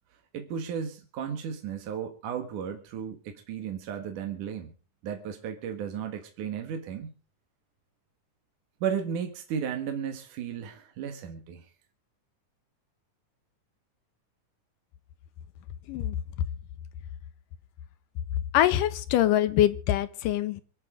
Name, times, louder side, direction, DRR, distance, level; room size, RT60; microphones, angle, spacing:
voice 1, 0.3-4.7 5.0-7.1 8.8-11.7, right 7 dB, 75° right, 5 dB, 3.1 m, -34 dB
voice 2, 18.5-20.6, left 12 dB, 85° left, 14 dB, 2.6 m, -24 dB
26.0 x 10.5 x 3.7 m, 0.37 s
omnidirectional pair, 3.7 m